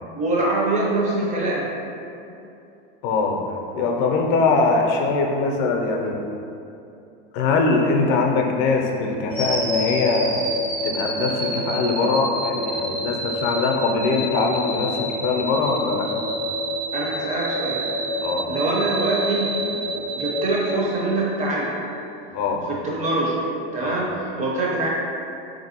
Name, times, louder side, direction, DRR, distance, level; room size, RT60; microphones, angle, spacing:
voice 1, 0.1-1.7 12.7-12.8 16.9-17.9 18.5-21.8 22.7-23.4 23.7-24.9, right 2 dB, 25° right, -4 dB, 0.7 m, -24 dB
voice 2, 3.0-6.2 7.3-10.4 10.8-16.1 18.2-18.5 22.3-22.6 23.8-24.0, left 3 dB, 55° left, 2 dB, 0.5 m, -22 dB
sound 1, 9.3-21.4, equal, 50° right, 1.2 m, -27 dB
3.5 x 2.6 x 2.8 m, 2.7 s
supercardioid pair, 120°, 29 cm